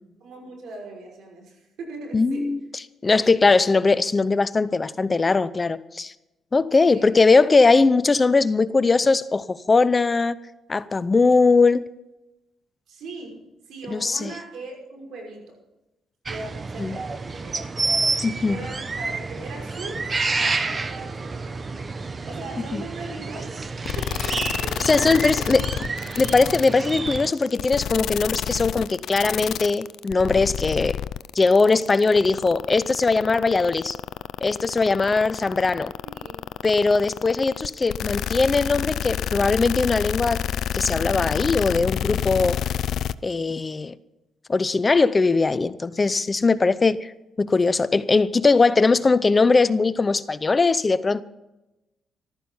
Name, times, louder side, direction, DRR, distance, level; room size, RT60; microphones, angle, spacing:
voice 1, 0.2-2.6 6.9-7.2 12.9-15.6 16.3-17.5 18.4-23.6 24.0-25.5 36.0-36.4, right 3 dB, 75° right, 5.9 m, -39 dB
voice 2, 2.1-2.6 3.0-6.1 6.5-10.4 10.7-11.9 13.9-14.3 16.8-17.0 18.2-18.6 22.7-22.8 24.9-25.7 26.2-31.0 31.3-34.0 34.4-35.9 36.6-40.4 40.7-42.6 43.2-43.9 44.5-47.1 47.4-51.2, left 3 dB, 30° left, 0.6 m, -20 dB
sound 1, 16.3-27.3, right 3 dB, 30° right, 1.0 m, -29 dB
sound 2, 23.9-43.1, left 10 dB, 70° left, 0.5 m, -28 dB
14.0 x 13.0 x 5.6 m
cardioid pair, 90°, 0 cm